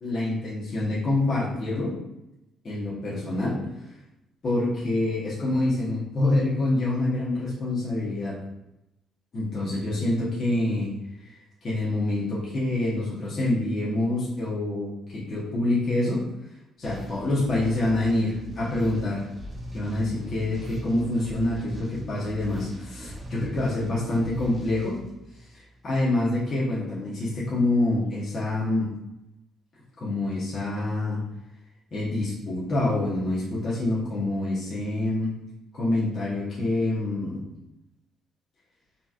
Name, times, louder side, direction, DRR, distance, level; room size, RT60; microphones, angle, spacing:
voice 1, 0.0-1.9 2.6-3.6 4.4-8.4 9.3-10.9 11.2-11.4 11.6-16.2 16.8-19.3 19.7-25.0 25.3-28.9 30.0-31.2 31.9-35.3 35.7-37.4, left 2 dB, 40° left, -9 dB, 1.0 m, -26 dB
sound 1, 16.8-25.7, equal, 20° right, 0.8 m, -39 dB
3.9 x 2.4 x 2.4 m, 0.90 s
cardioid pair, 105°, 0 cm